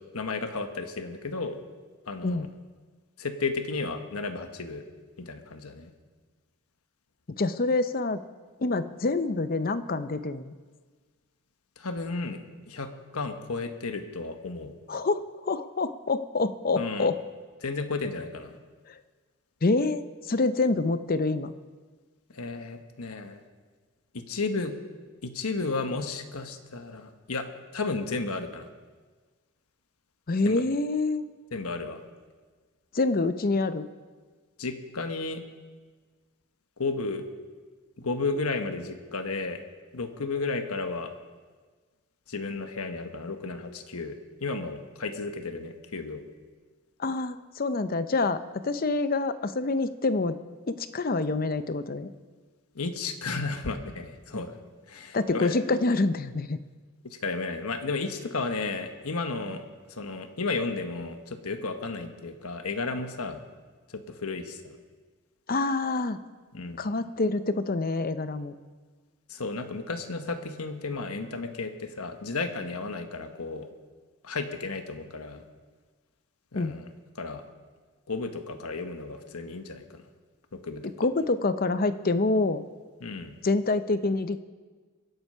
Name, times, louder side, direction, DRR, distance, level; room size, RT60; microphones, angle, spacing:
voice 1, 0.1-1.6 2.1-2.5 3.2-4.8 5.2-5.9 11.8-12.4 12.7-14.7 16.8-17.1 17.6-18.5 22.3-23.4 24.3-24.7 25.2-27.5 27.7-28.7 30.4-30.6 31.5-32.0 34.6-35.4 36.8-37.2 38.0-39.6 39.9-41.1 42.3-44.2 44.4-46.2 52.7-54.6 54.9-55.6 57.0-59.6 60.0-63.4 63.9-64.6 66.5-66.8 69.3-73.7 74.2-75.4 76.5-76.9 77.2-77.4 78.1-80.0 80.5-80.8 83.0-83.4, left 3 dB, 80° left, 7 dB, 1.2 m, -33 dB
voice 2, 7.4-8.2 8.6-10.5 14.9-17.2 18.9-19.0 19.6-21.5 30.3-31.2 32.9-33.9 47.0-48.4 48.6-50.4 50.7-52.1 54.3-54.4 55.1-56.6 65.5-66.2 66.8-68.5 76.5-76.7 81.0-82.6 83.4-84.4, left 3 dB, 40° left, 12 dB, 0.6 m, -26 dB
23.5 x 8.1 x 5.5 m, 1.4 s
head